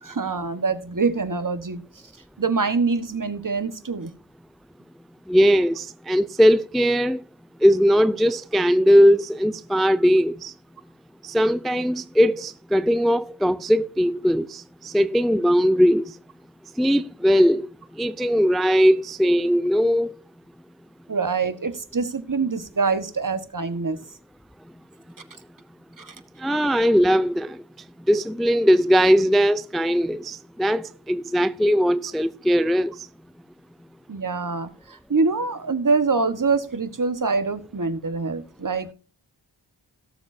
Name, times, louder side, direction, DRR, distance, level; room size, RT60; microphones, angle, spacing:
voice 1, 0.0-1.8 2.4-4.1 21.1-24.0 26.0-26.1 34.1-38.9, right 4 dB, 45° right, 1.4 m, -25 dB
voice 2, 5.3-7.2 7.6-10.5 11.2-16.1 16.8-17.7 18.0-20.1 26.4-27.6 28.1-32.9, equal, ahead, 0.4 m, -19 dB
17.5 x 7.2 x 2.7 m
wide cardioid pair, 55°, 44 cm